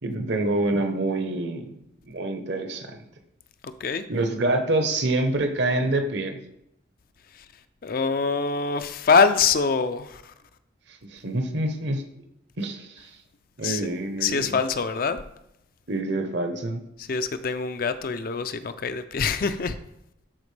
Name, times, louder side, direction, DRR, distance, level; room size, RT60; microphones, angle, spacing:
voice 1, 0.0-1.7 2.1-3.0 4.1-6.4 11.1-12.0 12.6-13.1 13.6-14.6 15.9-16.8, right 2 dB, 60° right, 6 dB, 0.9 m, -26 dB
voice 2, 7.8-10.3 13.6-13.8 14.2-15.2 17.0-19.8, left 5 dB, 45° left, 10 dB, 0.4 m, -24 dB
12.0 x 4.2 x 3.3 m, 0.80 s
head